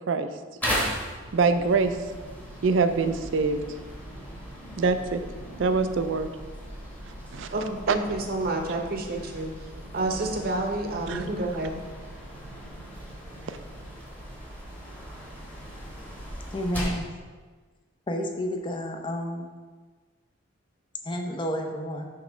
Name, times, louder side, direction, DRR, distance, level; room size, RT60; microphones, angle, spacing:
sound 1, 0.6-17.1, equal, 10° left, 1.2 m, -37 dB
voice 1, 1.3-1.9 2.6-3.6 4.8-5.2 5.6-6.3 7.3-7.5 7.9-8.0 11.1-11.2, right 4 dB, 85° right, 10 dB, 0.4 m, -23 dB
voice 2, 7.5-9.5 9.9-11.8, right 2 dB, 50° right, 2 dB, 0.8 m, -29 dB
voice 3, 16.5-17.1 18.1-19.5 21.0-22.0, equal, 25° left, 3 dB, 0.6 m, -30 dB
6.7 x 3.2 x 5.0 m, 1.4 s
head